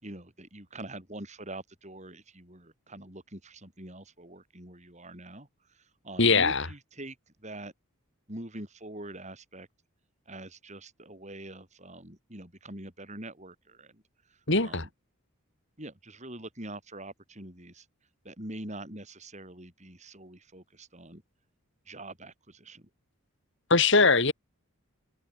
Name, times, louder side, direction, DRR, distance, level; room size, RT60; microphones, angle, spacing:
voice 1, 0.0-5.5 5.7-7.7 8.3-9.7 10.3-14.0 14.3-14.9 15.8-17.9 18.2-21.2 21.9-22.9, right 1 dB, 30° right, 6.6 m, -44 dB
voice 2, 6.2-6.7 14.5-14.9 23.7-24.3, left 4 dB, 55° left, 3.8 m, -21 dB
head